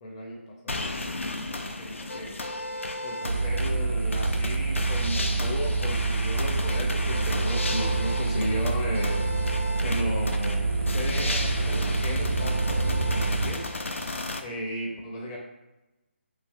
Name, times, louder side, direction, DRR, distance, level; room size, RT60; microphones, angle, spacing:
voice 1, 0.0-2.4 3.0-9.3 9.8-13.6 14.4-15.4, left 1 dB, 20° left, -2 dB, 0.5 m, -35 dB
sound 1, 0.7-14.4, left 2 dB, 80° left, 0.5 m, -34 dB
sound 2, 3.2-13.5, right 3 dB, 80° right, 0.7 m, -27 dB
2.7 x 2.7 x 3.6 m, 1.0 s
figure-of-eight pair, 160°, 7 cm